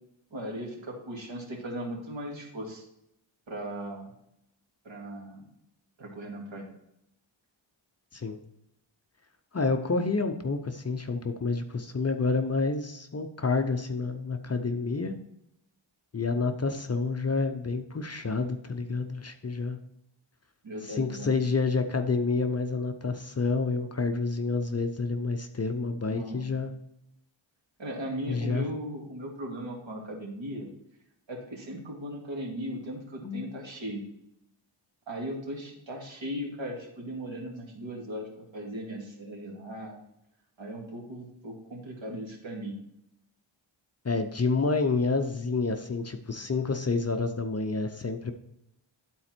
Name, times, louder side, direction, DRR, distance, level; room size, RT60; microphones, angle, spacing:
voice 1, 0.3-2.8 3.5-4.1 4.8-5.4 6.0-6.7 20.6-21.3 26.1-26.4 27.8-30.7 31.3-34.0 35.1-40.0 40.6-42.7, equal, 70° right, 0 dB, 2.3 m, -38 dB
voice 2, 9.5-15.1 16.1-19.8 20.8-26.7 28.3-28.6 33.2-33.5 44.0-48.3, left 4 dB, 30° left, 7 dB, 0.6 m, -29 dB
11.5 x 4.3 x 4.4 m, 0.80 s
wide cardioid pair, 135°, 48 cm